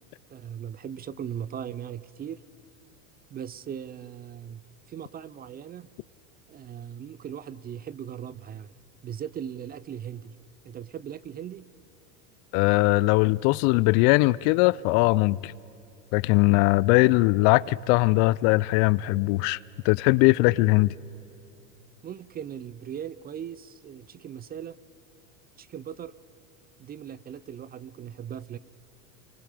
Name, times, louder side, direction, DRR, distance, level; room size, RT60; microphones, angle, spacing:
voice 1, 0.3-2.4 3.3-4.6 4.9-5.9 6.5-8.7 9.0-10.3 10.6-11.7 22.0-24.8 25.6-26.1 26.8-28.6, right 9 dB, 25° right, 0.5 m, -38 dB
voice 2, 12.5-15.5 16.1-19.6 19.8-20.9, left 22 dB, 55° left, 0.5 m, -20 dB
28.0 x 25.0 x 5.0 m
hypercardioid pair, 100°, 41 cm